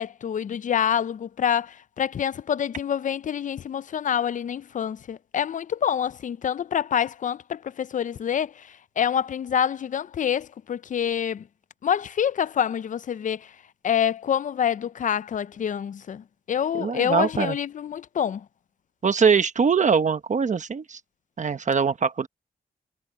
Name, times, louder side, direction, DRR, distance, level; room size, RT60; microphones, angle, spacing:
voice 1, 0.0-11.4 11.8-13.5 13.8-18.4, left 8 dB, 50° left, 0.4 m, -27 dB
voice 2, 16.7-17.6 19.0-21.0 21.4-22.3, right 6 dB, 50° right, 1.0 m, -22 dB
wide cardioid pair, 140°, 16 cm